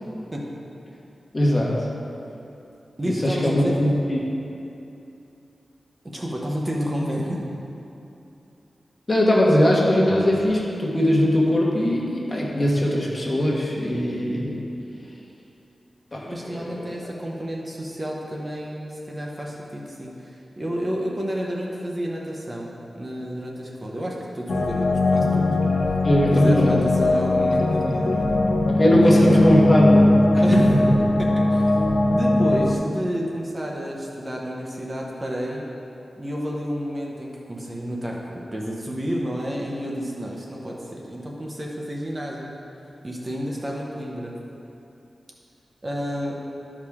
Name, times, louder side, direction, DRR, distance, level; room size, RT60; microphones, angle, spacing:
voice 1, 1.3-1.8 3.0-4.3 9.1-14.6 16.1-16.9 26.0-26.8 28.7-31.0, equal, 30° left, -4 dB, 1.4 m, -20 dB
voice 2, 3.0-3.7 6.1-7.4 16.3-25.5 26.3-28.3 29.0-29.3 30.4-30.7 31.2-31.7 32.1-35.6 36.2-42.6 43.0-44.3 45.8-46.4, equal, 25° right, -2 dB, 0.9 m, -30 dB
sound 1, 24.5-32.7, left 2 dB, 75° left, 0.7 m, -20 dB
13.0 x 4.9 x 3.6 m, 2.8 s
wide cardioid pair, 105°, 0 cm